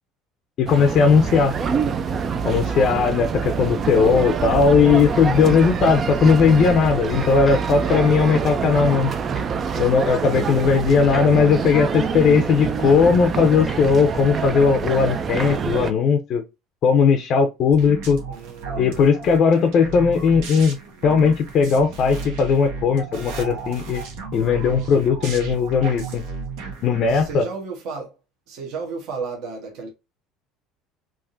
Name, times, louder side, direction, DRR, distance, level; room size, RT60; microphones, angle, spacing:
voice 1, 0.6-1.5 2.4-9.1 9.8-16.4 16.8-18.2 18.8-20.8 21.0-24.0 24.3-26.2 26.8-27.5, left 5 dB, 45° left, 0.6 m, -18 dB
sound 1, 0.7-15.9, right 6 dB, 30° right, 0.4 m, -25 dB
sound 2, 5.2-6.0 7.2-8.1 9.3-10.2 10.5-10.7 11.0-12.8 13.6-13.9 14.3-14.5, equal, ahead, 0.7 m, -37 dB
sound 3, 17.7-27.3, right 5 dB, 80° right, 1.2 m, -34 dB
voice 2, 18.3-19.0 27.1-28.1 28.5-29.9, right 4 dB, 60° right, 1.1 m, -33 dB
3.6 x 2.6 x 2.5 m
cardioid pair, 135°, 0 cm